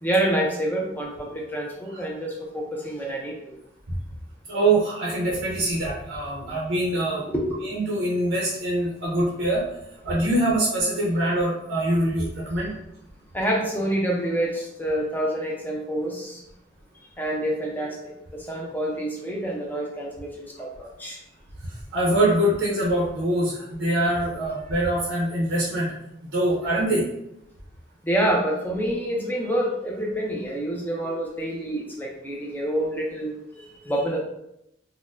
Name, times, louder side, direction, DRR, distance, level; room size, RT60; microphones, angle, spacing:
voice 1, 0.0-3.5 7.3-7.7 13.3-16.4 17.2-18.0 18.3-21.2 28.0-34.2, right 1 dB, 10° left, -2 dB, 0.5 m, -27 dB
voice 2, 4.5-7.2 7.7-9.6 10.0-12.7 21.9-25.9 26.3-27.0, right 1 dB, 70° right, -4 dB, 0.7 m, -24 dB
4.1 x 2.1 x 2.5 m, 0.81 s
head